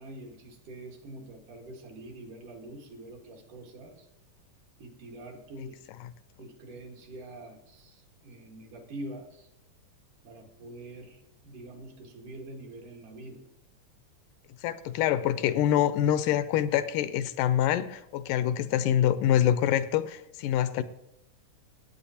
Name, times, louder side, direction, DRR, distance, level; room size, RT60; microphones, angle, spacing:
voice 1, 0.0-4.1 4.8-5.7 6.4-9.5 10.2-13.4, right 1 dB, 75° right, 1 dB, 3.2 m, -45 dB
voice 2, 14.6-20.8, left 11 dB, 85° left, 13 dB, 2.1 m, -25 dB
16.5 x 8.8 x 2.9 m, 0.85 s
omnidirectional pair, 3.7 m